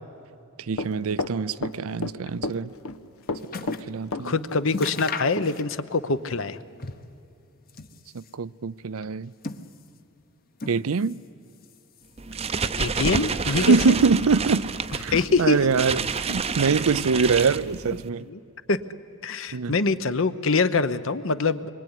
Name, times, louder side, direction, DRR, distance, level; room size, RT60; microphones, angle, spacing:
voice 1, 0.7-2.7 3.6-4.4 8.1-9.3 10.7-11.2 13.6-15.1 15.4-18.3 19.5-19.8, right 5 dB, 75° right, 0.6 m, -24 dB
Run, 0.8-2.1 2.4-3.0 3.3-4.6 4.9-5.0 5.4-5.5, left 2 dB, 85° left, 1.1 m, -31 dB
sound 1, 2.8-4.0 4.3-4.4 4.7-6.0 6.3-7.2 7.6-8.4 9.1-10.1 10.6-11.3 11.6-12.3 13.0-13.1, left 4 dB, 45° left, 1.1 m, -38 dB
voice 2, 4.2-6.6 12.8-14.0 15.1-15.6 18.3-18.4 18.7-18.8 19.2-21.7, left 3 dB, 60° left, 1.0 m, -24 dB
sound 2, 12.2-18.1, right 5 dB, 30° right, 0.7 m, -29 dB
26.5 x 23.0 x 9.8 m
head